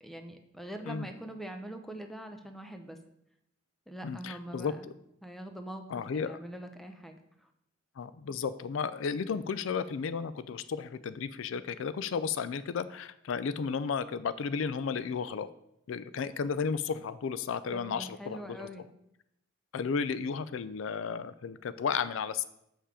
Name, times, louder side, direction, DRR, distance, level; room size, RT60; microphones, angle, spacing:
voice 1, 0.0-3.0 3.9-4.9 5.2-7.5 17.7-18.9, right 1 dB, ahead, 5 dB, 0.7 m, -43 dB
voice 2, 4.0-4.7 5.9-6.4 8.0-15.5 15.9-18.7 19.7-22.4, left 6 dB, 80° left, 14 dB, 0.4 m, -33 dB
7.3 x 5.6 x 4.9 m, 0.78 s
head